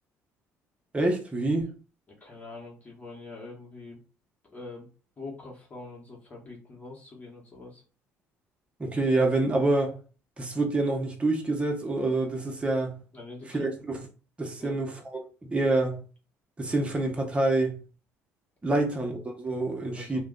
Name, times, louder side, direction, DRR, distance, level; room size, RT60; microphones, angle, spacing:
voice 1, 0.9-1.7 8.8-10.0 10.4-13.0 13.5-14.0 14.4-15.0 15.4-16.0 16.6-17.8 18.6-20.2, right 2 dB, 20° right, 0.9 m, -26 dB
voice 2, 2.1-4.0 4.5-4.9 5.2-7.8 13.1-13.8 14.6-14.8 19.9-20.2, left 3 dB, 30° left, 1.1 m, -44 dB
2.5 x 2.2 x 3.7 m
cardioid pair, 90°, 5 cm